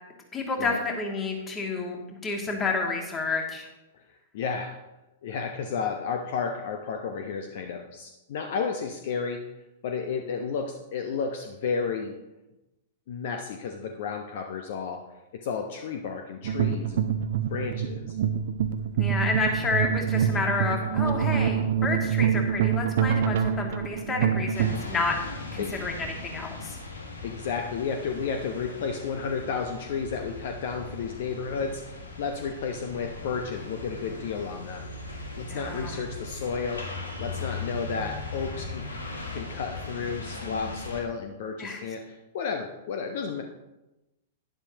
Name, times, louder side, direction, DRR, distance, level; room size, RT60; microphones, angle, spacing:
voice 1, 0.3-3.7 19.0-25.2 25.5-26.8 35.5-36.0 41.6-41.8, left 3 dB, 20° left, 1 dB, 2.1 m, -30 dB
voice 2, 4.3-4.7 5.2-9.4 9.8-12.2 13.1-15.0 15.4-17.1 17.5-18.2 25.6-25.7 27.2-34.9 35.4-39.0 39.3-43.4, left 5 dB, 50° left, 4 dB, 0.9 m, -32 dB
sound 1, 16.4-24.8, right 8 dB, 55° right, 0.7 m, -26 dB
sound 2, 24.5-41.0, left 2 dB, 75° left, 1.8 m, -39 dB
11.5 x 10.5 x 2.9 m, 1.0 s
figure-of-eight pair, 100°, 0 cm